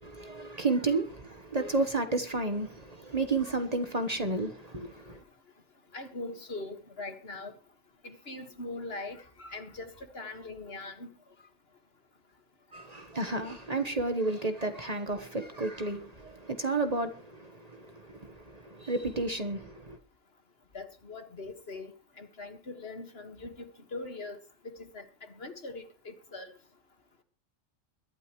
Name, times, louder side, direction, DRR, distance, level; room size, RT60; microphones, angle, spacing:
voice 1, 0.0-5.2 12.7-20.0, right 3 dB, 30° right, 1.3 m, -32 dB
voice 2, 5.9-7.5 8.0-11.1 20.7-21.9 22.2-24.4 24.6-26.5, left 2 dB, 55° left, 1.9 m, -41 dB
22.5 x 12.0 x 3.1 m
omnidirectional pair, 1.3 m